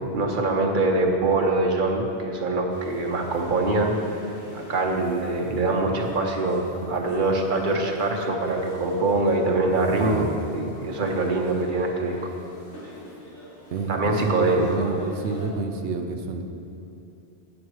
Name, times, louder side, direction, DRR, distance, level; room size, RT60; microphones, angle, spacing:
voice 1, 0.0-4.3 4.5-10.3 10.5-12.2 13.9-14.9, right 2 dB, 50° right, 1 dB, 1.0 m, -24 dB
sound 1, 2.7-15.5, left 1 dB, 45° left, 1.7 m, -42 dB
voice 2, 9.9-10.3 13.7-16.4, right 4 dB, 90° right, 4 dB, 0.9 m, -29 dB
8.7 x 7.2 x 4.7 m, 2.8 s
omnidirectional pair, 1.1 m